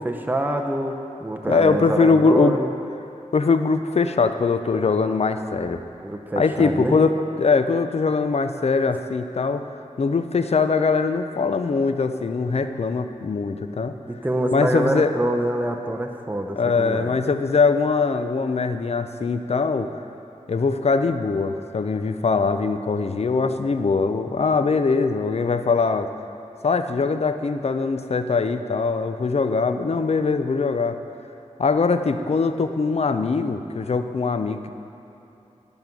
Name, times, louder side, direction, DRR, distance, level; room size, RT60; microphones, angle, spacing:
voice 1, 0.0-2.7 6.0-7.0 14.1-17.1, right 1 dB, 15° right, 3 dB, 0.7 m, -25 dB
voice 2, 1.5-2.6 3.3-5.8 6.4-9.6 10.0-13.9 14.5-15.1 16.6-19.9 20.5-26.1 26.6-31.0 31.6-34.7, left 4 dB, 50° left, 9 dB, 0.6 m, -22 dB
11.5 x 5.3 x 6.1 m, 2.9 s
cardioid pair, 50°, 13 cm